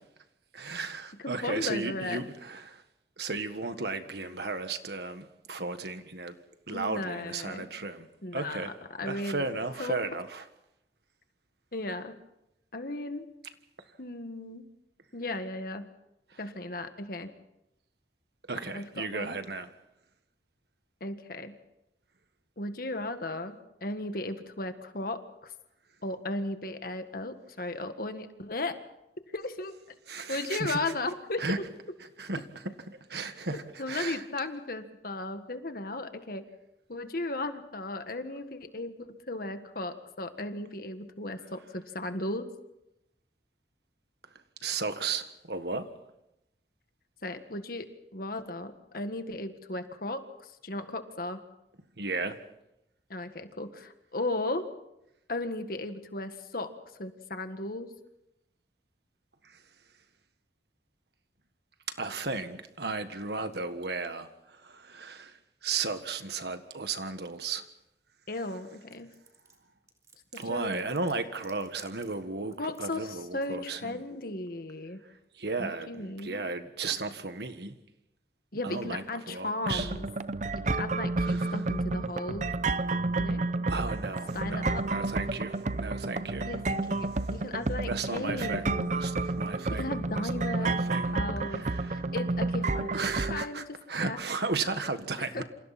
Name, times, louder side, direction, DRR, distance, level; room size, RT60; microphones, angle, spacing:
voice 1, 0.5-2.8 3.2-6.4 6.7-8.1 8.3-8.7 9.0-10.4 18.5-19.7 30.1-30.8 31.4-31.6 32.2-32.5 32.9-34.2 44.6-45.9 52.0-52.4 59.4-59.6 62.0-65.4 65.6-67.6 70.3-73.9 75.4-77.7 78.6-79.9 81.2-81.6 83.7-86.5 87.9-91.2 91.5-92.0 92.9-95.4, right 3 dB, 65° right, 1.6 m, -35 dB
voice 2, 1.2-2.2 6.7-7.7 8.2-9.4 9.8-10.1 11.7-12.2 12.7-13.3 14.0-14.7 15.1-15.9 16.4-17.3 18.7-19.4 21.0-21.6 22.6-25.5 26.0-28.8 29.3-29.8 30.3-31.6 33.5-36.4 36.9-42.5 47.2-51.4 53.1-54.7 55.3-57.9 68.3-69.1 70.3-70.8 72.6-75.0 75.6-76.5 78.5-80.1 80.5-82.6 83.2-83.4 84.3-84.8 86.5-88.9 89.7-93.0 93.3-94.2 95.3-95.4, left 2 dB, 55° left, 1.7 m, -36 dB
sound 1, 68.9-73.1, right 4 dB, 20° right, 3.3 m, -55 dB
sound 2, 79.6-93.4, right 3 dB, 40° right, 0.7 m, -30 dB
28.0 x 27.0 x 4.3 m
head